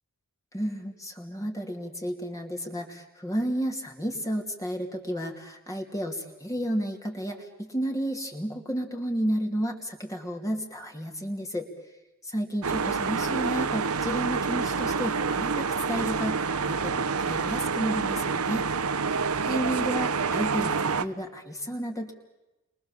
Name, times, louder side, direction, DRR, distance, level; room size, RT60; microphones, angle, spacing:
voice 1, 0.5-11.7 12.2-18.7 19.4-22.1, equal, 15° left, 2 dB, 2.7 m, -32 dB
sound 1, 12.6-21.1, right 5 dB, 80° right, 1.1 m, -27 dB
30.0 x 23.5 x 7.3 m, 1.0 s
head